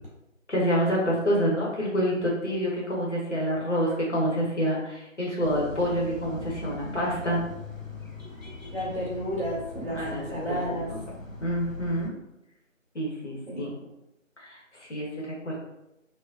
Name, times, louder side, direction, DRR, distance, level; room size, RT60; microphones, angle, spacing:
voice 1, 0.5-7.4 9.9-10.6 10.9-11.0 11.4-12.1 12.9-13.7 14.4-15.6, equal, 60° left, -4 dB, 1.1 m, -27 dB
sound 1, 5.4-12.1, left 2 dB, 85° left, 1.0 m, -40 dB
voice 2, 8.7-10.9 13.5-13.7, equal, 5° left, -23 dB, 1.4 m, -32 dB
3.9 x 2.5 x 2.7 m, 0.88 s
figure-of-eight pair, 170°, 40 cm